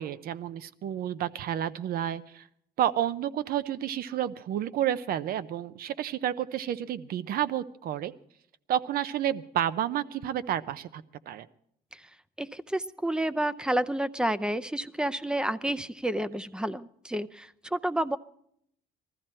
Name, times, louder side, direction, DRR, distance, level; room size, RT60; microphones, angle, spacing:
voice 1, 0.0-2.4 2.8-8.1 8.7-11.5, right 11 dB, 60° right, 16 dB, 0.7 m, -30 dB
voice 2, 12.4-18.2, right 1 dB, 5° right, 15 dB, 0.5 m, -30 dB
20.0 x 14.0 x 4.4 m, 0.70 s
cardioid pair, 110°, 17 cm